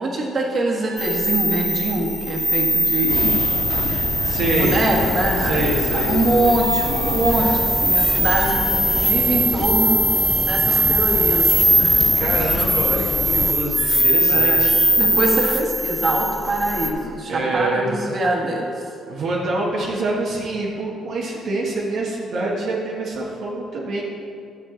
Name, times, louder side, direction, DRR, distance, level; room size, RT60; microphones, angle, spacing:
voice 1, 0.0-3.4 3.8-10.1 10.4-12.0 14.3-18.9, right 2 dB, 45° right, -1 dB, 1.8 m, -24 dB
sound 1, 1.0-16.9, right 1 dB, 5° right, 0.8 m, -20 dB
sound 2, 3.1-13.5, left 5 dB, 50° left, 0.4 m, -28 dB
voice 2, 4.2-4.8 5.4-6.2 12.1-14.7 17.3-18.0 19.1-24.0, right 2 dB, 70° right, -4 dB, 1.3 m, -25 dB
10.5 x 7.5 x 3.9 m, 2.5 s
cardioid pair, 90°, 0 cm